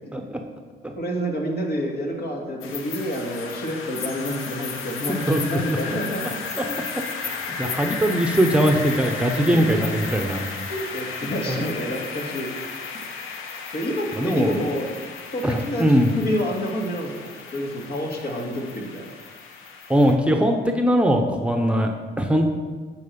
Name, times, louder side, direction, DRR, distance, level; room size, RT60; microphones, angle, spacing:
voice 1, 1.0-6.3 6.7-6.8 7.6-7.7 9.3-9.8 10.7-12.5 13.7-14.9 15.3-19.1, equal, 55° left, 0 dB, 2.3 m, -28 dB
sound 1, 2.6-20.2, left 5 dB, 85° left, 1.1 m, -34 dB
voice 2, 7.2-10.5 11.5-11.6 14.2-14.5 15.4-16.1 19.9-21.9 22.2-22.5, equal, 5° right, 3 dB, 1.0 m, -21 dB
10.5 x 4.9 x 7.0 m, 1.4 s
cardioid pair, 90°, 20 cm